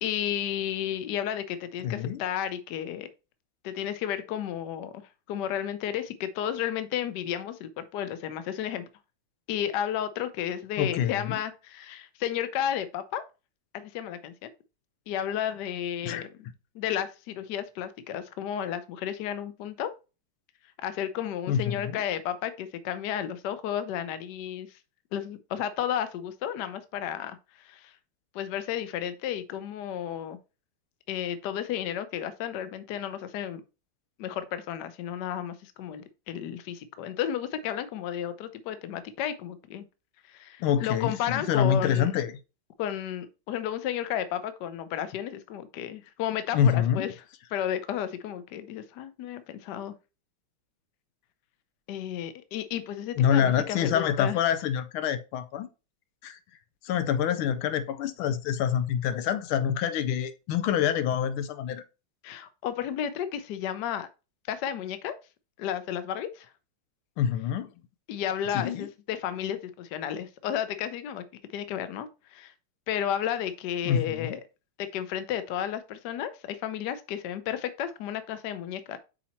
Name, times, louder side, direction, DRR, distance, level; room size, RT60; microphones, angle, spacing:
voice 1, 0.0-3.1 3.6-5.0 5.3-8.9 9.5-13.2 13.7-14.5 15.1-19.9 20.8-24.7 25.1-27.4 27.6-27.9 28.3-30.4 31.1-33.6 34.2-39.8 40.3-42.1 42.8-47.1 47.5-49.9 51.9-54.4 62.2-64.1 64.5-65.2 65.6-66.5 68.1-71.2 71.5-72.5 72.9-74.4 74.8-79.0, left 10 dB, 65° left, 1.1 m, -32 dB
voice 2, 1.8-2.2 10.8-11.4 16.0-16.3 21.5-22.0 40.6-42.4 46.5-47.1 53.2-55.7 56.2-56.4 56.8-61.8 67.2-67.7 68.5-68.9 73.9-74.4, left 8 dB, 85° left, 1.5 m, -26 dB
5.7 x 4.2 x 4.2 m
omnidirectional pair, 2.3 m